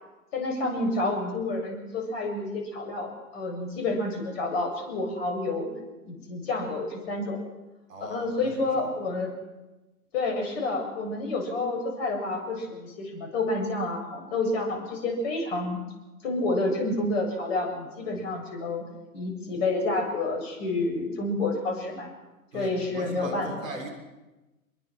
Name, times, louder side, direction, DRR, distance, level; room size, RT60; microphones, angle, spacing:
voice 1, 0.3-5.7 6.1-7.4 8.0-9.3 10.1-15.8 16.2-18.8 19.1-22.1 22.5-23.5, left 2 dB, 45° left, 2 dB, 7.7 m, -29 dB
voice 2, 7.9-8.9 18.1-18.4 22.5-23.9, right 1 dB, 60° right, 3 dB, 6.7 m, -39 dB
27.0 x 22.5 x 6.3 m, 1.1 s
figure-of-eight pair, 115°, 44 cm